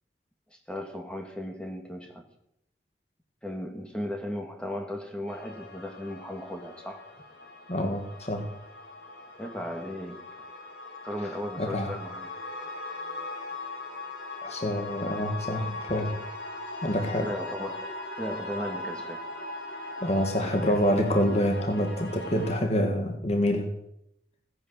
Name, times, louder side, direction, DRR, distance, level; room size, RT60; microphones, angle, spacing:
voice 1, 0.5-2.2 3.4-7.1 9.4-10.2 11.0-12.4 17.2-17.9 18.2-19.2 20.4-20.8, left 1 dB, 5° left, 3 dB, 2.4 m, -36 dB
sound 1, 5.3-22.6, left 2 dB, 80° left, 3.3 m, -40 dB
voice 2, 7.7-8.5 11.6-11.9 14.4-16.2 16.8-17.3 20.0-23.7, equal, 40° left, 4 dB, 1.8 m, -27 dB
17.5 x 10.0 x 7.9 m, 0.78 s
head